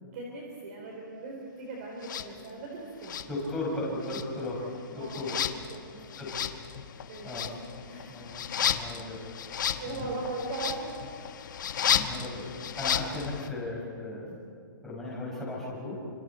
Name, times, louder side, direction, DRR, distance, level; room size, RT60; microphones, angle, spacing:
voice 1, 0.0-3.2 4.9-5.3 5.7-5.9 7.1-7.4 7.8-8.3 9.8-11.1, right 3 dB, 40° right, -1 dB, 4.0 m, -39 dB
sound 1, 2.0-2.3 3.0-3.8 4.0-13.5, left 9 dB, 60° left, 1.4 m, -33 dB
voice 2, 3.3-4.6 4.9-5.3 5.9-6.3 7.2-7.5 8.1-8.3 8.6-9.2 9.8-10.2 11.9-12.5 12.8-14.4 14.8-16.0, left 2 dB, 5° left, -6 dB, 6.2 m, -36 dB
29.0 x 26.5 x 4.5 m, 2.5 s
hypercardioid pair, 170°, 12 cm